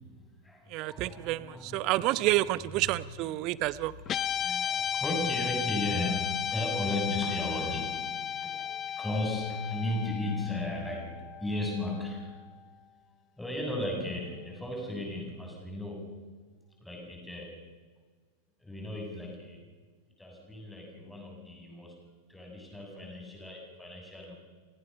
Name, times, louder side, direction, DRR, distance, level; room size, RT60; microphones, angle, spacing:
voice 1, 0.0-1.9 4.4-12.4 13.4-16.2 16.8-17.7 18.6-19.7 20.2-24.3, left 1 dB, 5° left, 0 dB, 7.7 m, -36 dB
voice 2, 0.7-3.9, right 17 dB, 40° right, 19 dB, 0.9 m, -29 dB
Guitar, 4.1-12.5, left 9 dB, 30° left, 0.9 m, -34 dB
29.5 x 18.5 x 6.8 m, 1.5 s
figure-of-eight pair, 90°, 0 cm